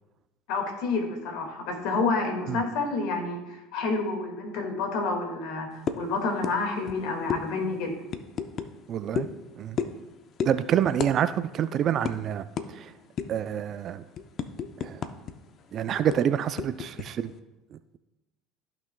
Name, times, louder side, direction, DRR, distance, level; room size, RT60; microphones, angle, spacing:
voice 1, 0.5-7.9, left 3 dB, 75° left, 4 dB, 1.9 m, -29 dB
sound 1, 5.9-6.1 6.4-6.6 6.8-7.0 7.3-7.4 8.1-8.7 9.1-9.3 9.8-10.0 10.4-10.6 11.0-11.1 11.4-11.6 12.0-12.1 12.6-12.7 13.2-13.4 13.8-15.3 15.6-15.7 16.1-17.1, left 7 dB, 45° left, 0.6 m, -31 dB
voice 2, 8.9-9.3 9.6-9.8 10.4-13.0 13.3-14.0 14.8-15.1 15.7-17.3 17.7-17.8, right 9 dB, 45° right, 12 dB, 0.3 m, -27 dB
14.5 x 6.1 x 2.2 m, 1.0 s
supercardioid pair, 105°, 0 cm